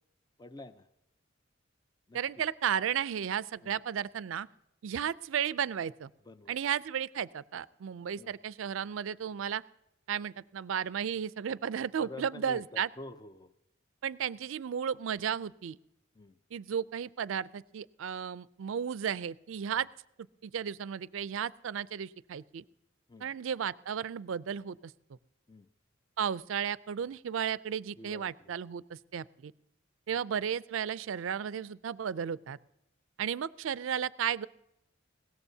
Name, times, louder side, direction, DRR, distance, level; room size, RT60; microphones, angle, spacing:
voice 1, 0.4-0.9 2.1-2.2 3.6-3.8 6.3-6.6 8.2-8.3 12.0-13.5 16.2-16.4 23.1-23.3 25.5-25.7 28.0-28.5, left 2 dB, 20° left, 11 dB, 0.5 m, -48 dB
voice 2, 2.1-4.5 4.8-6.1 6.5-9.6 10.1-12.9 14.0-15.8 16.5-19.9 20.4-22.6 23.2-25.2 26.2-29.5 30.1-32.6 33.2-34.5, right 8 dB, 70° right, 18 dB, 0.4 m, -34 dB
21.0 x 17.0 x 2.7 m, 0.85 s
head